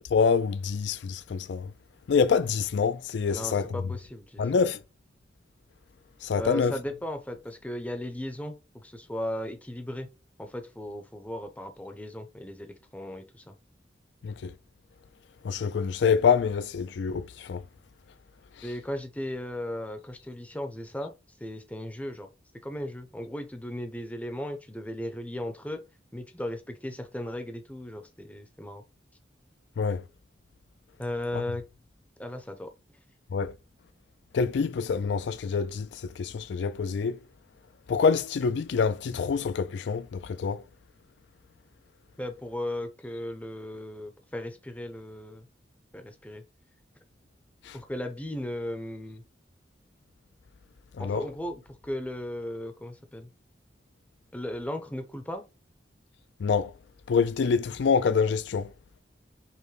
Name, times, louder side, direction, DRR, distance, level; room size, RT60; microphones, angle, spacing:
voice 1, 0.0-1.7 2.1-3.8 4.4-4.8 6.2-6.8 14.2-14.5 15.4-17.6 18.6-18.7 29.8-30.0 31.3-31.4 33.3-33.5 34.3-37.2 37.9-40.6 47.6-47.8 50.9-51.3 56.4-56.7 57.1-58.7, left 5 dB, 80° left, 0.4 m, -26 dB
voice 2, 3.3-4.4 6.4-10.1 10.4-13.4 18.6-21.1 21.4-22.3 22.6-25.8 26.1-28.8 31.0-31.6 32.2-32.7 42.2-45.5 45.9-46.4 47.7-49.2 51.0-53.3 54.3-55.4, left 1 dB, 10° left, 0.5 m, -36 dB
5.5 x 2.1 x 3.2 m
head